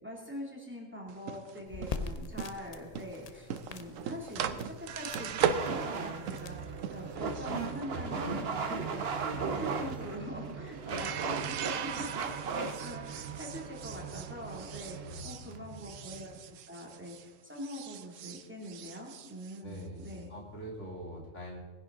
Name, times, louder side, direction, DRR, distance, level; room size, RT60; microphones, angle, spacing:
voice 1, 0.0-15.0 15.2-16.4 16.7-20.3, left 1 dB, 10° right, -2 dB, 2.3 m, -43 dB
sound 1, 1.1-17.3 17.6-20.2, right 8 dB, 80° right, 1.1 m, -39 dB
sound 2, 1.7-7.2, left 4 dB, 40° left, 0.6 m, -44 dB
sound 3, 5.4-16.5, right 4 dB, 55° right, 1.1 m, -38 dB
voice 2, 15.0-15.8 19.6-21.6, equal, 65° left, -3 dB, 3.2 m, -44 dB
19.5 x 10.5 x 3.7 m, 1.3 s
omnidirectional pair, 1.3 m